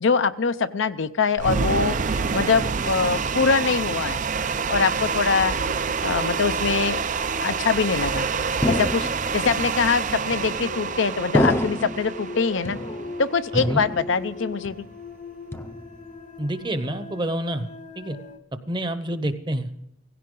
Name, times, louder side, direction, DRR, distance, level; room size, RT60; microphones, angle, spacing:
voice 1, 0.0-4.2 4.7-5.5 6.0-7.0 7.4-8.3 8.7-9.1 9.3-12.8 13.2-14.9, left 5 dB, 60° left, 11 dB, 0.6 m, -23 dB
sound 1, 1.4-13.5, right 5 dB, 35° right, 0.4 m, -27 dB
sound 2, 4.5-18.4, left 2 dB, 35° left, 0.9 m, -41 dB
sound 3, 8.6-9.5 10.3-10.8 11.3-12.1 12.7-13.3 13.6-14.4 14.6-15.1 15.5-16.1, left 1 dB, 10° left, 0.6 m, -27 dB
voice 2, 16.4-17.7 18.0-18.2 18.7-19.7, right 1 dB, 20° right, 10 dB, 0.9 m, -27 dB
17.0 x 16.0 x 3.8 m, 0.81 s
head